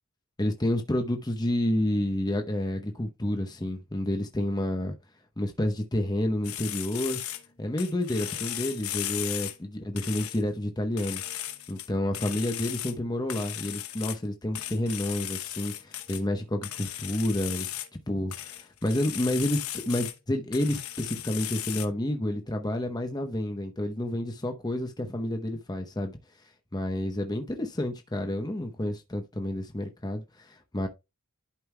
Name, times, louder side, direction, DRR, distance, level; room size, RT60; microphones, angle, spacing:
voice 1, 0.4-5.0 5.4-7.2 7.6-11.2 11.7-17.7 18.1-26.2 26.7-30.9, left 1 dB, 20° left, 0.8 m, -29 dB
sound 1, 6.4-7.5 7.8-9.6 10.0-10.4 11.0-11.9 12.1-13.0 13.3-14.2 14.5-16.2 16.6-17.9 18.3-20.2 20.5-21.9, left 13 dB, 70° left, 0.9 m, -36 dB
11.5 x 5.3 x 2.2 m
head